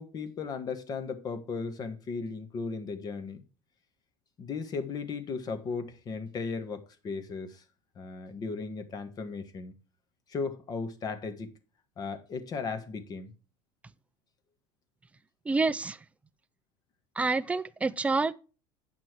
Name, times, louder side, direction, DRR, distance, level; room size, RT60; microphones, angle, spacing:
voice 1, 0.0-3.4 4.4-7.6 8.0-9.7 10.3-11.5 12.0-13.3, left 4 dB, 35° left, 1.6 m, -36 dB
voice 2, 15.4-16.0 17.2-18.3, right 3 dB, 10° right, 0.6 m, -28 dB
9.2 x 6.0 x 4.6 m
supercardioid pair, 115°, 11 cm